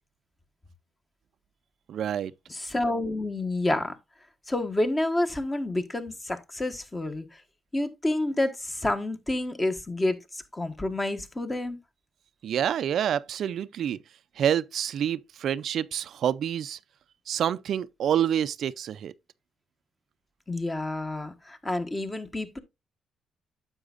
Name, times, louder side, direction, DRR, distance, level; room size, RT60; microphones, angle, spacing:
voice 1, 1.9-2.3 12.4-14.0 14.4-16.8 17.3-19.1, right 9 dB, 65° right, 0.4 m, -27 dB
voice 2, 2.5-3.9 4.5-7.4 7.7-11.8 20.5-22.6, left 2 dB, 20° left, 1.3 m, -29 dB
9.8 x 7.2 x 2.5 m
cardioid pair, 90°, 0 cm